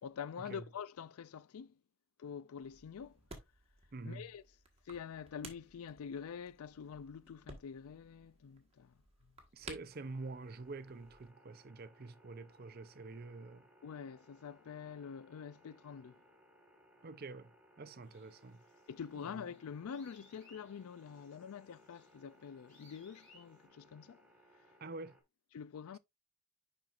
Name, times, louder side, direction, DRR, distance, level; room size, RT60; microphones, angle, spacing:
voice 1, 0.0-1.8 2.2-3.2 4.0-4.4 4.9-9.3 13.8-16.2 18.9-24.3 25.5-26.0, left 7 dB, 80° left, 0.4 m, -46 dB
sound 1, 2.6-11.3, right 3 dB, 25° right, 1.4 m, -56 dB
voice 2, 3.9-4.3 9.5-13.7 17.0-17.5 17.8-18.6 19.2-19.5 24.8-25.2, right 3 dB, 45° right, 0.5 m, -47 dB
sound 2, 9.9-25.2, equal, 5° right, 1.6 m, -66 dB
sound 3, 18.0-23.6, left 2 dB, 35° left, 4.3 m, -67 dB
10.5 x 4.4 x 2.5 m
head